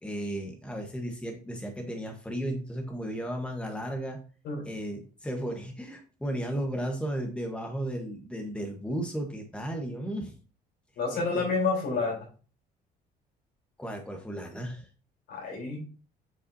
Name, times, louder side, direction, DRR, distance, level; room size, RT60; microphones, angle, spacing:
voice 1, 0.0-4.2 4.6-10.3 13.8-14.9, right 1 dB, 5° left, 3 dB, 1.2 m, -34 dB
voice 2, 11.0-12.3 15.3-15.8, left 4 dB, 75° left, -1 dB, 3.8 m, -29 dB
7.4 x 5.8 x 2.7 m, 0.37 s
cardioid pair, 110°, 17 cm